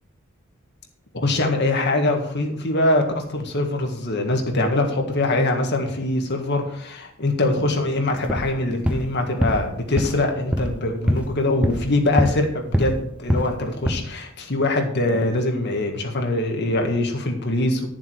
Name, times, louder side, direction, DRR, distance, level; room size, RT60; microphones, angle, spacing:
voice 1, 1.1-17.9, left 2 dB, 55° left, 3 dB, 1.8 m, -23 dB
sound 1, 8.2-8.5 8.8-9.1 9.4-9.7 10.0-10.2 10.5-10.8 11.1-11.3 11.6-12.5 12.7-13.0 13.3-13.6 13.8-14.0, equal, 5° right, 0.8 m, -23 dB
11.5 x 7.2 x 4.6 m, 0.70 s
head